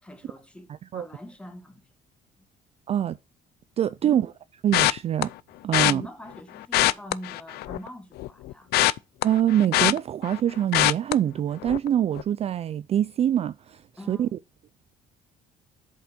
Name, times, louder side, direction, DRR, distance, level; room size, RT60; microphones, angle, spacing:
voice 1, 0.0-1.9 2.4-2.5 4.0-4.3 5.8-8.7 14.0-14.3, left 1 dB, 5° left, 1.6 m, -43 dB
voice 2, 2.9-3.2 3.8-4.3 4.6-5.3 5.6-6.0 9.2-13.8 14.1-14.3, right 10 dB, 40° right, 0.4 m, -24 dB
sound 1, 4.7-5.2 5.7-5.9 6.6-7.9 8.2-10.4 10.7-11.1 11.6-11.9 12.2-12.3, left 16 dB, 75° left, 0.4 m, -22 dB
7.8 x 5.2 x 5.2 m
cardioid pair, 120°, 17 cm